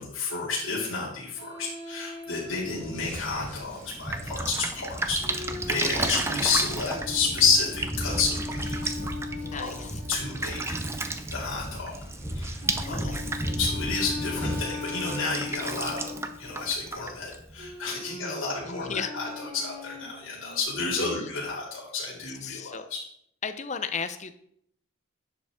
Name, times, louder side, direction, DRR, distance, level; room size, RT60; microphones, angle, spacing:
voice 1, 0.0-8.7 9.5-10.8 11.3-11.9 12.3-13.2 13.6-16.1 16.4-23.0, left 4 dB, 75° left, -6 dB, 2.8 m, -30 dB
sound 1, 1.3-3.6 5.2-11.2 12.6-16.6 17.6-20.6, left 3 dB, 55° right, 2.7 m, -40 dB
sound 2, 2.5-14.8, equal, 10° left, 3.2 m, -36 dB
Drip, 3.7-17.8, right 3 dB, 15° right, 0.5 m, -35 dB
voice 2, 5.7-6.2 9.4-10.0 12.9-13.2 18.1-19.3 20.3-20.4 20.8-21.3 22.3-22.9 23.4-24.3, left 5 dB, 35° left, 10 dB, 0.6 m, -36 dB
11.0 x 7.0 x 3.6 m, 0.69 s
head